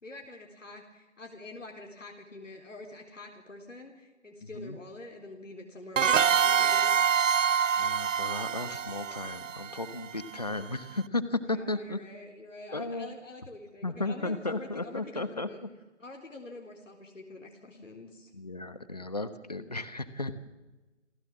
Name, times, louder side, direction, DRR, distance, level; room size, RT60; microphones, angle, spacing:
voice 1, 0.0-6.9 11.5-15.6 16.0-18.3, left 2 dB, 80° left, 1 dB, 3.9 m, -46 dB
sound 1, 6.0-10.5, right 7 dB, 80° right, 0.6 m, -26 dB
voice 2, 7.8-12.0 12.7-13.1 13.8-15.7 17.8-17.9 18.3-20.3, left 2 dB, 30° left, 12 dB, 1.2 m, -34 dB
27.5 x 16.5 x 7.5 m, 1.2 s
figure-of-eight pair, 180°, 38 cm